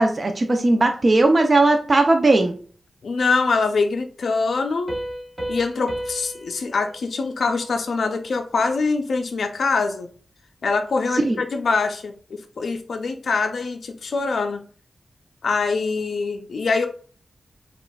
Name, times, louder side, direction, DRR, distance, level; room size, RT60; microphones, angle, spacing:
voice 1, 0.0-2.5 11.1-11.4, right 2 dB, 40° right, 5 dB, 0.5 m, -18 dB
voice 2, 3.0-4.9 5.5-10.1 10.6-12.1 12.6-14.6 15.4-16.9, left 4 dB, 75° left, 6 dB, 0.4 m, -23 dB
Piano, 4.9-8.3, equal, 20° right, 0.9 m, -34 dB
5.1 x 2.4 x 2.3 m, 0.43 s
wide cardioid pair, 110°, 0 cm